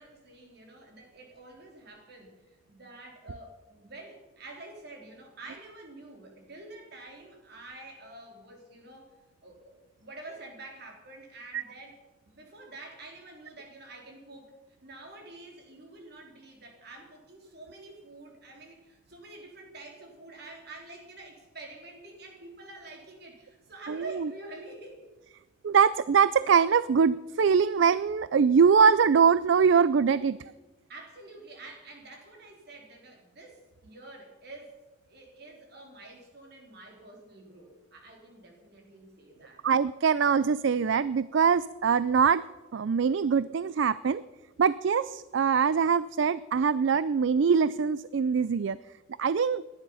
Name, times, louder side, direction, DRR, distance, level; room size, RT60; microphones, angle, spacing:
voice 1, 0.0-9.1 9.4-12.0 12.2-14.5 14.8-25.1 30.9-34.8 35.1-39.7, right 2 dB, 55° right, 1 dB, 3.6 m, -48 dB
voice 2, 23.9-24.3 25.6-30.4 39.6-42.4 42.7-44.2 44.6-48.8 49.2-49.6, right 6 dB, 70° right, 17 dB, 0.4 m, -23 dB
18.0 x 12.0 x 5.6 m, 1.2 s
head